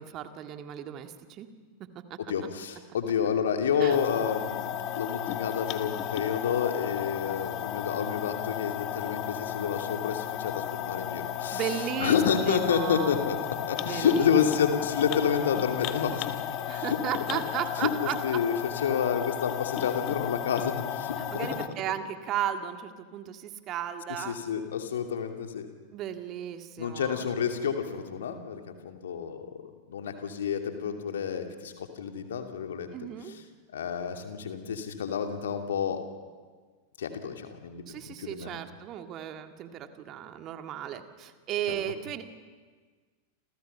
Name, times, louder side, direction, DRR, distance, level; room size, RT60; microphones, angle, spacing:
voice 1, 0.0-1.5 2.1-2.2 3.8-4.0 11.5-12.2 12.5-13.2 13.8-14.3 16.7-18.4 21.2-24.4 25.9-27.2 32.9-33.4 37.9-42.2, right 10 dB, 35° right, 7 dB, 2.0 m, -35 dB
voice 2, 2.3-4.7 5.0-11.6 12.0-13.4 13.6-16.4 16.7-17.0 17.3-17.4 17.8-21.2 24.2-25.7 26.8-29.5 29.9-32.9 33.3-33.4 33.7-36.0 37.0-38.6 41.7-41.8, left 7 dB, 65° left, 4 dB, 2.7 m, -29 dB
sound 1, 3.9-21.7, left 10 dB, 40° left, 1.6 m, -34 dB
29.0 x 28.0 x 5.7 m, 1.5 s
figure-of-eight pair, 90°, 0 cm